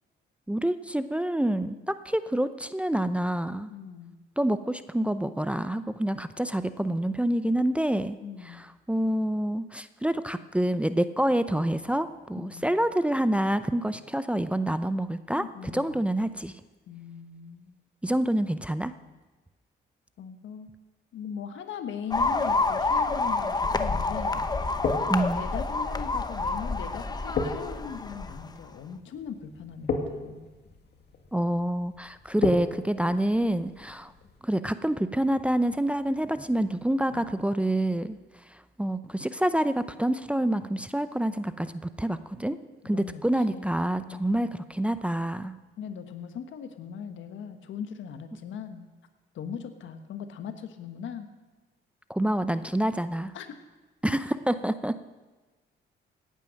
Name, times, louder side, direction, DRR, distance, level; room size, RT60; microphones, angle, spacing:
voice 1, 0.5-3.7 4.4-8.2 8.4-16.5 18.0-18.9 25.1-25.4 31.3-34.1 34.4-38.2 38.8-42.6 42.8-45.5 52.1-53.3 54.0-54.9, right 1 dB, 5° right, 11 dB, 0.6 m, -27 dB
voice 2, 3.7-4.2 8.2-8.7 12.3-12.7 15.3-16.0 16.9-17.7 20.2-20.7 21.1-24.5 24.9-25.1 25.3-30.5 37.1-37.3 42.8-43.2 43.5-43.7 44.1-44.5 45.8-48.9 49.3-51.3 53.3-53.5, left 7 dB, 75° left, 8 dB, 1.4 m, -39 dB
sound 1, 22.1-28.5, left 3 dB, 20° left, 0.9 m, -28 dB
sound 2, 24.5-34.4, left 4 dB, 55° left, 2.3 m, -37 dB
17.0 x 9.2 x 6.4 m, 1.2 s
cardioid pair, 90°, 20 cm